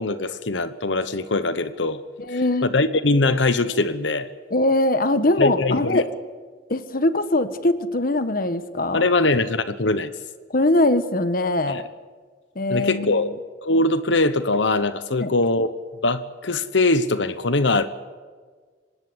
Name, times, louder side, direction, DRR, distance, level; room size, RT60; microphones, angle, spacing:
voice 1, 0.0-2.0 2.6-4.3 5.4-6.0 8.9-10.1 11.7-11.9 12.7-13.3 13.6-15.7 16.0-17.9, left 2 dB, 85° left, 12 dB, 1.2 m, -22 dB
voice 2, 2.2-2.7 4.5-6.1 6.7-9.0 10.5-11.9 12.5-13.3 15.1-15.3, left 2 dB, 50° left, 11 dB, 1.3 m, -22 dB
25.0 x 19.5 x 8.1 m, 1.5 s
head